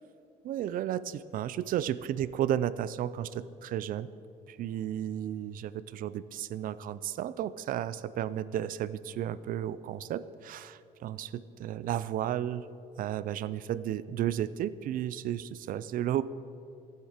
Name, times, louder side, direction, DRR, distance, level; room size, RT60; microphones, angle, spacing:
voice 1, 0.4-4.1 4.5-12.6 13.0-16.2, right 11 dB, 55° right, 16 dB, 0.4 m, -33 dB
14.5 x 7.3 x 5.0 m, 2.5 s
cardioid pair, 110°, 17 cm